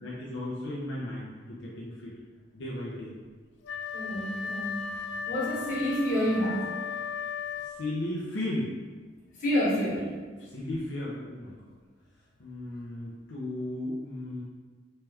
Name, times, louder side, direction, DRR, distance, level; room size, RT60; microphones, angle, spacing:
voice 1, 0.0-2.2 2.5-3.2 5.2-5.3 7.6-8.7 10.4-11.8 12.4-14.4, left 1 dB, 90° left, -6 dB, 0.7 m, -35 dB
Wind instrument woodwind instrument, 3.6-8.1, left 6 dB, 70° left, 0.3 m, -36 dB
voice 2, 3.9-4.8 5.3-6.6 9.4-10.1, equal, 50° left, -7 dB, 1.3 m, -28 dB
3.3 x 3.2 x 3.4 m, 1.4 s
head